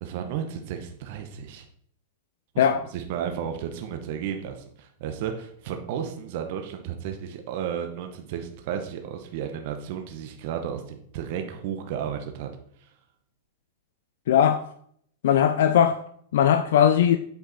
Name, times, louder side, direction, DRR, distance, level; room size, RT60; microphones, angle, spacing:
voice 1, 0.0-1.6 2.5-12.5 12.8-12.9, right 8 dB, 50° right, 0.9 m, -33 dB
voice 2, 14.3-14.6 15.2-16.0 16.3-17.2, left 9 dB, 70° left, 0.5 m, -19 dB
8.0 x 4.9 x 4.1 m
supercardioid pair, 155°, 0 cm